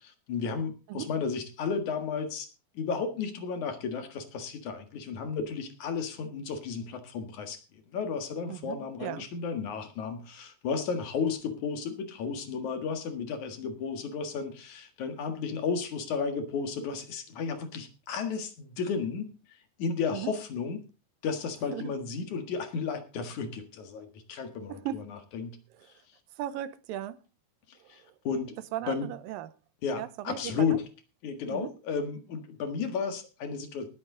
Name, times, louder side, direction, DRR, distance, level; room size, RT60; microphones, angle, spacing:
voice 1, 0.0-2.5 2.8-7.6 7.9-19.3 19.8-20.8 21.2-25.6 27.9-28.6 28.9-29.1 29.8-30.8 31.2-33.9, left 5 dB, 60° left, 3.0 m, -33 dB
voice 2, 8.5-9.3 20.1-20.3 21.7-21.9 24.7-25.1 26.4-27.2 27.8-28.1 28.7-29.5 30.0-30.5 31.5-31.7, right 12 dB, 80° right, 2.5 m, -37 dB
19.0 x 8.8 x 3.8 m
omnidirectional pair, 4.0 m